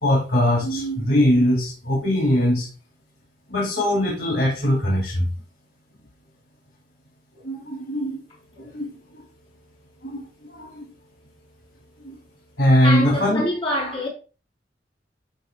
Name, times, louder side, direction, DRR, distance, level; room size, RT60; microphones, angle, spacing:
voice 1, 0.0-2.7 3.5-5.3 7.4-8.2 8.5-9.2 10.0-10.9 12.0-12.2 12.6-13.5, equal, 65° left, 2.5 m, -21 dB
voice 2, 12.8-14.1, left 1 dB, 30° left, 3.8 m, -25 dB
11.5 x 6.2 x 2.3 m
head